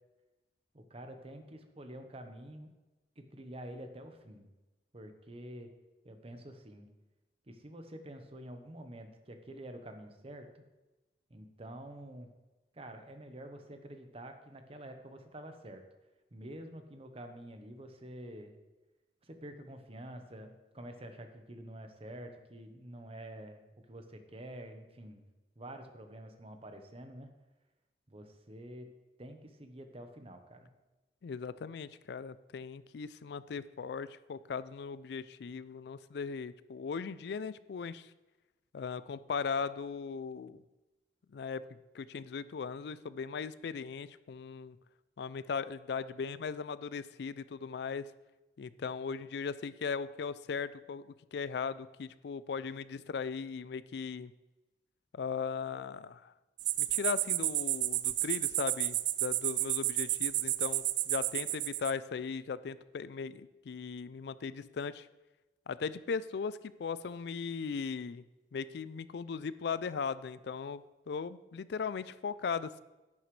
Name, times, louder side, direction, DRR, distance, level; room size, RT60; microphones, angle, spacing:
voice 1, 0.7-2.7 3.2-4.5 4.9-5.7 6.0-6.9 7.5-10.6 11.3-12.3 12.7-15.8 16.3-18.6 19.2-25.2 25.6-27.3 28.1-28.9 29.2-30.7, right 1 dB, 35° right, 6 dB, 0.9 m, -48 dB
voice 2, 31.2-38.1 38.7-40.6 41.3-41.6 41.9-44.8 45.2-48.1 48.6-54.3 55.1-56.3 56.8-65.1 65.7-68.2 68.5-72.8, left 5 dB, 65° left, 16 dB, 0.4 m, -38 dB
sound 1, 56.6-61.9, right 16 dB, 75° right, 0.4 m, -32 dB
11.0 x 9.3 x 3.2 m, 1.1 s
head